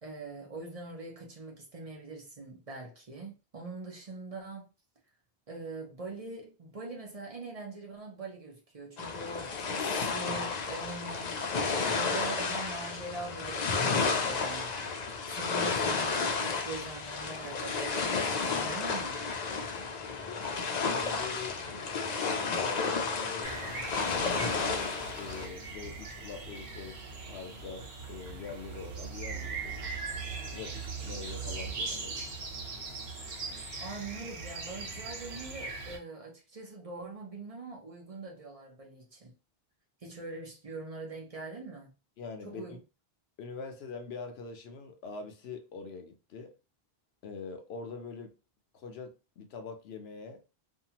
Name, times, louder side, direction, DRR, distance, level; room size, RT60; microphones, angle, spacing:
voice 1, 0.0-4.7 5.5-11.4 11.9-14.7 15.3-19.2 33.8-39.3 40.0-41.9 42.4-42.8, right 3 dB, 40° right, 0.7 m, -43 dB
sound 1, 9.0-25.5, left 4 dB, 55° left, 0.5 m, -32 dB
voice 2, 20.8-21.6 22.2-27.0 27.3-29.9 30.5-32.2 42.2-42.7 43.4-46.5 47.2-48.3 48.7-50.4, left 5 dB, 80° left, 0.9 m, -43 dB
sound 2, 23.4-36.0, right 4 dB, 90° right, 1.3 m, -40 dB
2.7 x 2.3 x 2.8 m
omnidirectional pair, 1.0 m